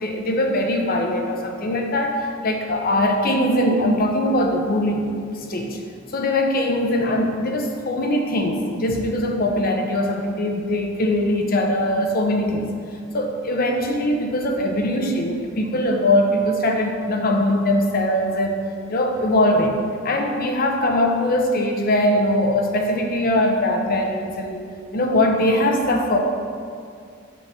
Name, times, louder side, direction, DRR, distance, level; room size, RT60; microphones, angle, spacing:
voice 1, 0.0-5.1 5.4-5.8 6.1-12.7 13.1-18.6 18.9-19.8 20.0-26.2, left 1 dB, 45° left, 3 dB, 0.8 m, -21 dB
8.4 x 3.8 x 6.9 m, 2.3 s
head